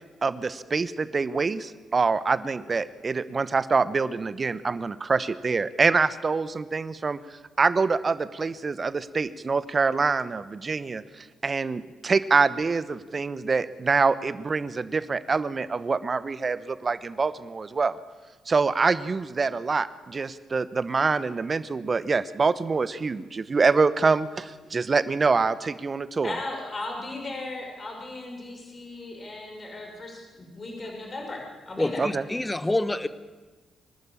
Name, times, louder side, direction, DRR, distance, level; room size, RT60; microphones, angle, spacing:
voice 1, 0.2-18.0 18.5-26.4 32.0-32.2, right 4 dB, 40° right, 15 dB, 1.0 m, -25 dB
voice 2, 26.2-32.0, left 2 dB, 40° left, 1 dB, 6.0 m, -37 dB
voice 3, 31.8-33.1, left 2 dB, 15° left, 14 dB, 1.2 m, -27 dB
24.5 x 12.5 x 8.8 m, 1.3 s
hypercardioid pair, 45°, 0 cm